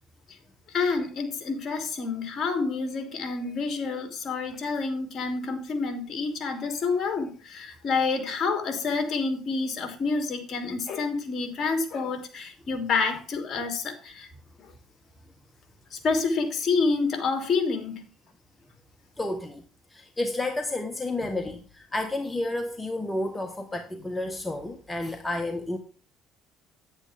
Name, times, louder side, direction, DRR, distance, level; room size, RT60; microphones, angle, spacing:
voice 1, 0.7-14.3 14.6-14.7 15.9-18.1, left 4 dB, 45° left, 2.9 m, -28 dB
voice 2, 19.2-19.6 19.9-25.8, left 2 dB, 10° left, 1.3 m, -31 dB
10.0 x 9.1 x 3.5 m
cardioid pair, 105°, 0 cm